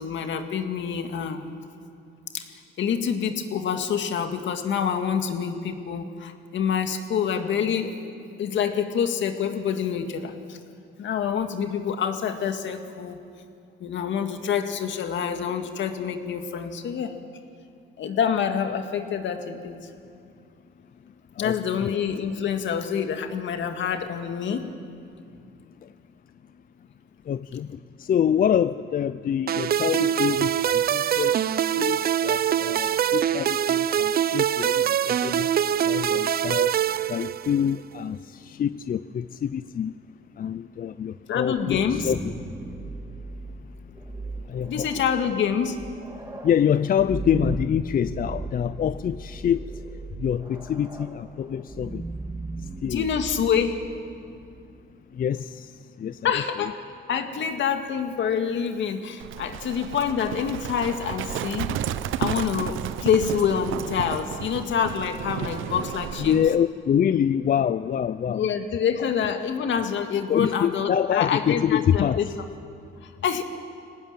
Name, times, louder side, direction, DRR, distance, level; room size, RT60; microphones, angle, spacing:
voice 1, 0.0-1.5 2.3-8.0 8.4-10.6 11.0-13.2 13.8-17.1 18.0-19.9 21.4-24.7 41.3-42.1 44.6-45.8 52.8-53.8 56.2-56.8 57.1-61.8 62.2-66.4 68.3-72.3 73.0-73.4, left 7 dB, 70° left, 6 dB, 2.0 m, -27 dB
voice 2, 21.4-21.9 27.3-27.7 28.0-31.4 31.8-32.0 32.2-35.5 35.9-36.7 37.1-38.2 38.4-39.9 40.4-42.3 44.5-45.0 46.4-49.6 50.2-52.0 52.8-53.1 55.2-55.6 56.0-56.3 56.6-56.7 66.2-68.4 69.0-69.1 70.3-72.3, left 9 dB, 45° left, 13 dB, 0.5 m, -26 dB
sound 1, 29.5-37.7, right 10 dB, 50° right, 0.5 m, -24 dB
sound 2, 41.8-54.4, right 2 dB, 20° right, 2.5 m, -37 dB
Livestock farm animals working animals, 59.2-66.6, right 11 dB, 85° right, 0.7 m, -32 dB
24.0 x 18.5 x 9.1 m, 2.4 s
cardioid pair, 90°, 20 cm